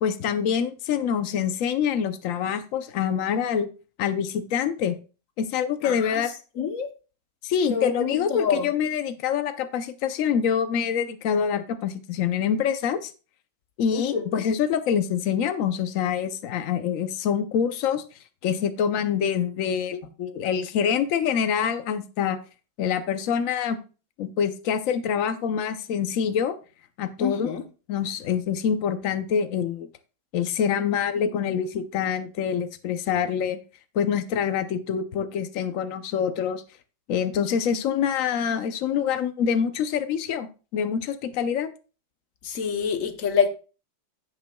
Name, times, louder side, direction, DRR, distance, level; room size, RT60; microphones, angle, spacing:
voice 1, 0.0-3.7 4.0-5.0 5.4-6.3 7.4-13.1 13.8-18.0 18.4-22.4 22.8-23.8 24.2-26.5 27.0-27.5 27.9-29.9 30.3-33.6 33.9-36.6 37.1-40.5 40.7-41.7, left 7 dB, 90° left, 0.7 m, -25 dB
voice 2, 5.8-6.2 6.6-6.9 7.7-8.7 13.9-14.2 27.2-27.6 42.4-43.5, left 6 dB, 55° left, 1.0 m, -26 dB
16.0 x 5.8 x 2.2 m
omnidirectional pair, 2.2 m